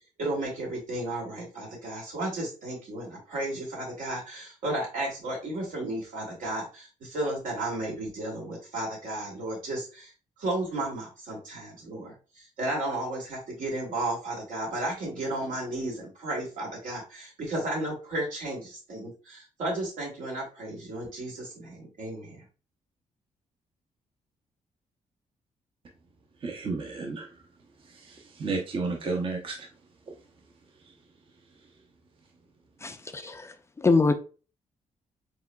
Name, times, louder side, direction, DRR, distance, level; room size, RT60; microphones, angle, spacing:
voice 1, 0.2-10.1 10.4-22.4, right 1 dB, 80° right, 2.4 m, -33 dB
voice 2, 26.4-27.3 28.4-29.6, right 3 dB, 40° right, 0.7 m, -31 dB
voice 3, 32.8-34.1, left 3 dB, 20° left, 0.3 m, -25 dB
4.7 x 3.9 x 2.2 m
wide cardioid pair, 140°, 13 cm